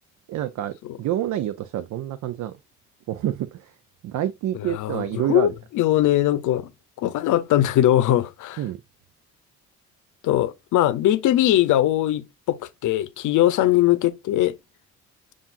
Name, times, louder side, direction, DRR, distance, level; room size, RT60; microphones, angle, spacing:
voice 1, 0.3-2.5 3.1-3.7 4.0-5.5 8.6-8.8, right 12 dB, 70° right, 0.6 m, -28 dB
voice 2, 4.6-6.7 7.0-8.6 10.2-14.5, left 13 dB, 80° left, 0.7 m, -21 dB
7.0 x 2.5 x 2.5 m
cardioid pair, 90°, 30 cm